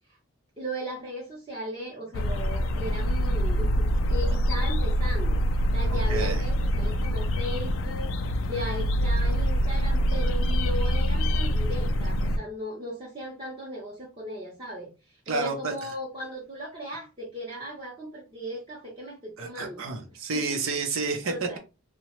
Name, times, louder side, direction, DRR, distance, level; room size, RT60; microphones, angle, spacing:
voice 1, 0.6-5.4 5.7-8.1 8.4-19.8 20.3-20.6 21.2-21.6, equal, 25° right, -6 dB, 0.6 m, -37 dB
sound 1, 2.1-12.4, equal, 70° left, 0.3 m, -25 dB
voice 2, 5.9-6.4 15.3-15.7 19.4-21.6, right 4 dB, 75° right, 5 dB, 0.6 m, -30 dB
2.8 x 2.1 x 2.9 m, 0.30 s
head